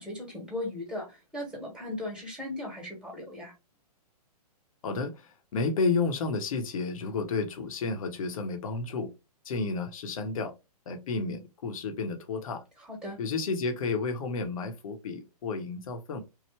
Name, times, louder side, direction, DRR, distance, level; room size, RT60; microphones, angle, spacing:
voice 1, 0.0-3.5 12.9-13.2, left 1 dB, 5° right, 1.2 m, -37 dB
voice 2, 4.8-9.1 9.4-10.5 10.9-12.6 13.2-16.2, left 4 dB, 60° left, 0.8 m, -31 dB
3.2 x 2.1 x 3.2 m
hypercardioid pair, 135°, 20 cm